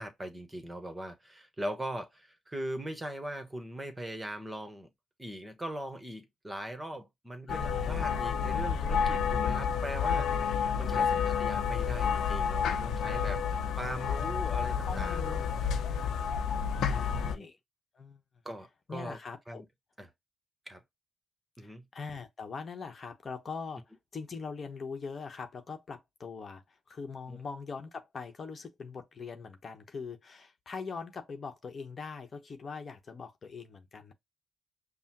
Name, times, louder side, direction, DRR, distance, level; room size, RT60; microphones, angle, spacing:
voice 1, 0.0-4.9 5.2-15.4 16.7-17.5 18.4-19.2 19.5-19.6 20.0-20.1 20.7-20.8 21.6-21.8 27.3-27.4, right 1 dB, 15° right, 1.3 m, -40 dB
sound 1, 7.5-17.4, left 7 dB, 75° left, 0.8 m, -30 dB
voice 2, 7.5-8.4 9.7-10.1 10.9-11.3 13.9-14.2 14.8-15.5 16.8-17.6 17.9-18.2 18.9-19.6 21.6-34.1, left 5 dB, 40° left, 1.1 m, -42 dB
5.5 x 2.1 x 2.9 m
cardioid pair, 90°, 0 cm